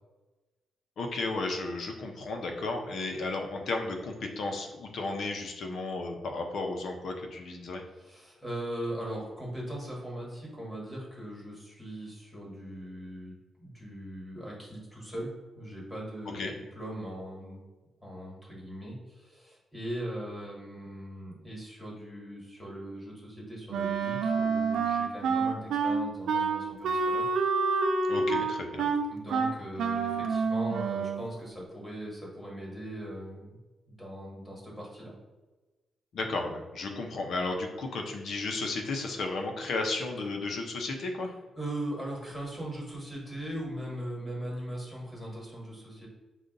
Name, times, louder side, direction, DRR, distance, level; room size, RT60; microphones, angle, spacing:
voice 1, 1.0-7.8 16.3-16.5 28.1-28.9 36.1-41.3, left 3 dB, 60° left, 3 dB, 0.7 m, -33 dB
voice 2, 7.9-16.4 16.7-17.6 18.0-27.3 29.1-33.6 33.9-35.2 41.5-46.1, right 1 dB, 10° left, -3 dB, 1.4 m, -39 dB
Wind instrument woodwind instrument, 23.7-31.3, right 4 dB, 85° right, 0.5 m, -28 dB
5.3 x 2.4 x 3.8 m, 1.2 s
cardioid pair, 145°, 0 cm